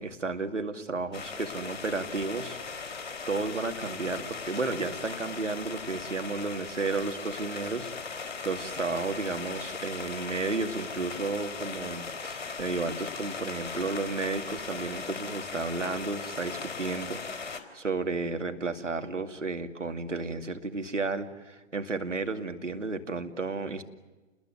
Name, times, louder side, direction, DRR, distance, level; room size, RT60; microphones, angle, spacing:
voice 1, 0.0-23.8, right 3 dB, 85° right, 7 dB, 2.4 m, -33 dB
sound 1, 1.1-17.6, left 5 dB, 60° left, 3.6 m, -38 dB
29.0 x 21.0 x 9.4 m, 1.2 s
figure-of-eight pair, 125°, 36 cm